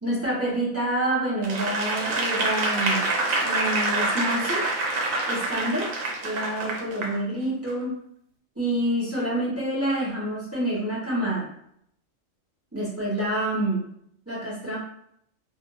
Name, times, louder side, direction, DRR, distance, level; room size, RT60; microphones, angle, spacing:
voice 1, 0.0-3.0 3.4-4.7 5.3-5.9 6.2-8.0 8.6-11.5 12.7-13.8 14.3-14.8, right 1 dB, 15° right, -7 dB, 0.8 m, -27 dB
Applause / Crowd, 1.4-7.2 7.7-7.8, right 2 dB, 80° right, 1.0 m, -26 dB
2.5 x 2.5 x 2.7 m, 0.69 s
omnidirectional pair, 1.4 m